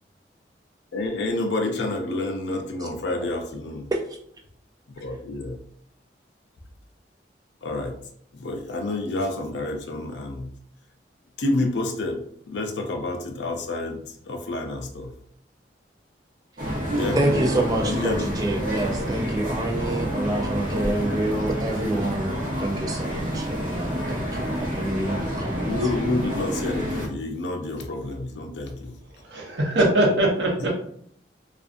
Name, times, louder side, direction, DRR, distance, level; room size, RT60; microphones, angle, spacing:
voice 1, 0.9-3.9 4.9-5.6 7.6-8.0 8.4-10.5 11.4-15.1 16.9-17.2 17.8-18.3 25.6-28.9, left 2 dB, 80° left, 4 dB, 0.5 m, -29 dB
sound 1, 16.6-27.1, equal, 50° right, 0.7 m, -28 dB
voice 2, 17.2-25.7, right 1 dB, 20° right, 1 dB, 0.4 m, -27 dB
voice 3, 29.2-30.7, right 1 dB, 85° right, -1 dB, 0.8 m, -21 dB
2.5 x 2.4 x 2.5 m, 0.64 s
head